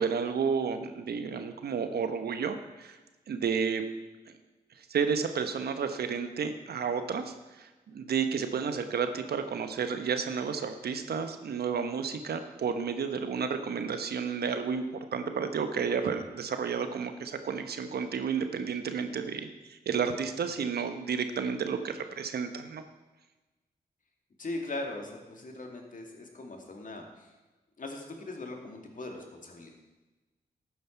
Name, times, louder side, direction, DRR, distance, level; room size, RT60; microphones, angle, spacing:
voice 1, 0.0-3.0 3.3-3.9 4.3-4.4 4.8-22.8, right 6 dB, 80° right, 8 dB, 1.0 m, -31 dB
voice 2, 24.4-27.3 27.8-29.7, left 2 dB, 55° left, 2 dB, 2.4 m, -40 dB
12.5 x 9.4 x 4.6 m, 1.2 s
cardioid pair, 45°, 16 cm